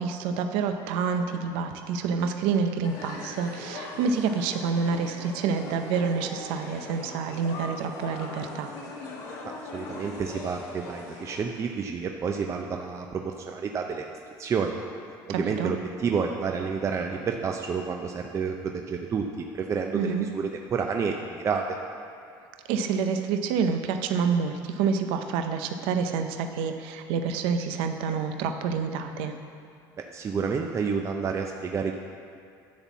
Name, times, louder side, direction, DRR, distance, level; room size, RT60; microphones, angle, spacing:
voice 1, 0.0-8.7 15.3-15.7 19.9-20.3 22.7-29.3, right 5 dB, 80° right, 6 dB, 0.6 m, -28 dB
sound 1, 2.8-11.4, left 2 dB, 85° left, 1.8 m, -40 dB
voice 2, 9.7-14.0 14.4-14.8 15.3-21.8 30.1-32.0, right 5 dB, 35° right, 3 dB, 0.6 m, -29 dB
10.5 x 4.2 x 7.2 m, 2.4 s
cardioid pair, 115°, 9 cm